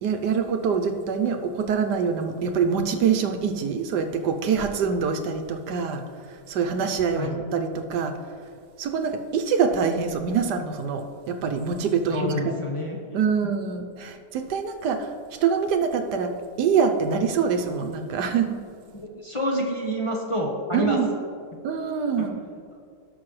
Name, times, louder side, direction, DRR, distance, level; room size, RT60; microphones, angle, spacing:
voice 1, 0.0-6.0 6.5-8.1 8.8-12.5 13.1-15.1 15.4-16.3 16.6-18.6 20.7-21.1 21.6-22.4, right 6 dB, 80° right, 6 dB, 1.3 m, -25 dB
voice 2, 12.1-13.0 18.9-21.0 22.2-22.3, equal, 20° left, -2 dB, 1.0 m, -27 dB
18.0 x 6.1 x 3.2 m, 2.2 s
omnidirectional pair, 1.8 m